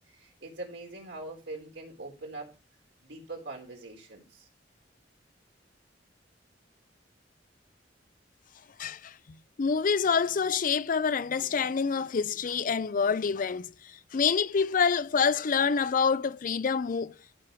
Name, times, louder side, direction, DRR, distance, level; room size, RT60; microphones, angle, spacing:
voice 1, 0.0-2.5 3.0-4.5, right 2 dB, 80° right, 4.0 m, -42 dB
voice 2, 8.8-9.1 9.6-17.1, left 6 dB, 45° left, 0.5 m, -27 dB
14.0 x 6.1 x 3.1 m
head